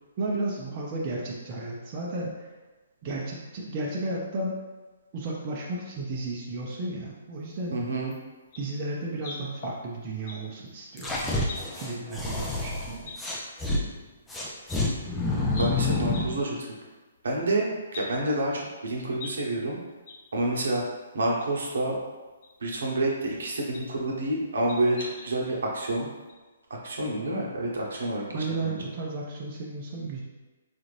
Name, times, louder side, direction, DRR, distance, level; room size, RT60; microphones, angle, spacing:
voice 1, 0.2-2.5 3.0-4.5 5.1-7.8 8.6-11.1 11.7-13.1 28.3-30.2, right 2 dB, 35° right, -3 dB, 0.6 m, -33 dB
voice 2, 7.7-8.1 15.6-16.6 17.2-19.8 20.3-20.8 21.1-22.0 22.6-26.1 26.7-28.2 28.6-28.7, right 1 dB, 75° right, -2 dB, 0.9 m, -28 dB
sound 1, 8.1-8.2 8.5-8.6 9.1-10.4 10.7-10.8 11.4-11.9 12.5-12.6 13.0-13.1 14.4-14.5 14.7-14.8 15.5-15.7 16.1-16.2 16.6-16.7 16.9-17.0 17.9-18.0 18.5-19.3 19.6-19.7 20.0-20.1 20.6-20.7 21.6-21.7 22.4-22.5 23.7-23.9 24.7-25.5 25.9-26.0 26.3-26.4, left 3 dB, 45° left, 0.8 m, -41 dB
sound 2, 11.0-13.8 14.3-16.4, left 2 dB, 5° left, 0.5 m, -28 dB
4.0 x 2.5 x 3.2 m, 1.2 s
hypercardioid pair, 145°, 0 cm